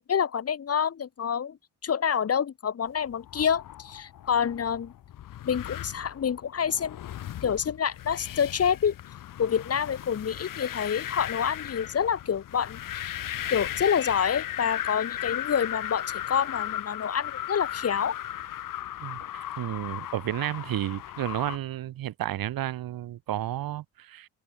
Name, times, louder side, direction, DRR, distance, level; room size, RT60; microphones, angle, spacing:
voice 1, 0.0-1.6 1.8-4.9 5.4-7.0 7.4-8.9 9.4-13.2 13.5-18.2, left 7 dB, 40° left, 1.2 m, -27 dB
sound 1, 3.1-21.6, left 12 dB, 55° left, 0.9 m, -37 dB
voice 2, 19.0-24.3, right 13 dB, 65° right, 0.8 m, -32 dB
cardioid pair, 125°, 38 cm